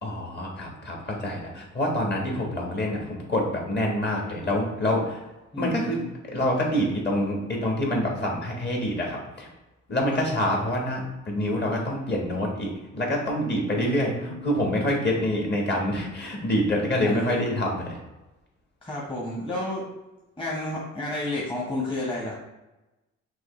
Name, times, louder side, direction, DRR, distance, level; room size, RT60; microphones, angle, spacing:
voice 1, 0.0-5.2 5.6-6.0 6.3-9.5 9.9-18.0, left 1 dB, 35° left, -1 dB, 1.5 m, -26 dB
voice 2, 5.5-6.1 10.1-10.2 13.7-14.4 17.0-17.6 18.8-19.8 20.4-22.4, left 1 dB, 15° left, -5 dB, 1.1 m, -31 dB
6.1 x 2.5 x 3.1 m, 1.0 s
cardioid pair, 90°, 30 cm